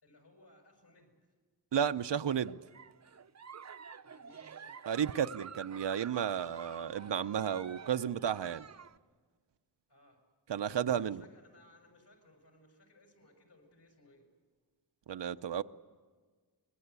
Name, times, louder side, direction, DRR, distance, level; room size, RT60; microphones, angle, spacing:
voice 1, 0.0-1.2 4.0-4.6 9.9-10.2 10.9-14.3, left 1 dB, 70° left, 6.5 m, -62 dB
voice 2, 1.7-2.6 4.9-8.6 10.5-11.2 15.1-15.6, right 8 dB, 85° right, 0.7 m, -33 dB
Giggle, 2.3-9.0, right 6 dB, 40° right, 0.6 m, -49 dB
25.5 x 21.5 x 8.2 m
wide cardioid pair, 70°, 41 cm